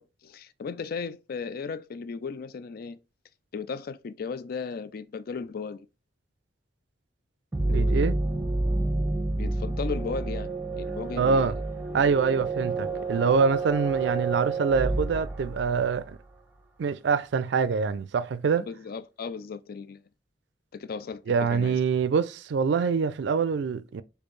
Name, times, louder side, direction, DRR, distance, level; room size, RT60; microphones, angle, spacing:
voice 1, 0.0-3.0 3.5-5.9 7.6-8.1 9.4-11.6 18.6-20.0 20.7-21.8, left 5 dB, 55° left, 0.4 m, -36 dB
sound 1, 7.5-16.2, right 2 dB, 10° right, 0.8 m, -29 dB
voice 2, 7.7-8.2 11.2-11.6 11.9-16.2 16.8-18.7 21.3-24.0, right 5 dB, 65° right, 0.3 m, -25 dB
4.3 x 2.7 x 3.2 m
head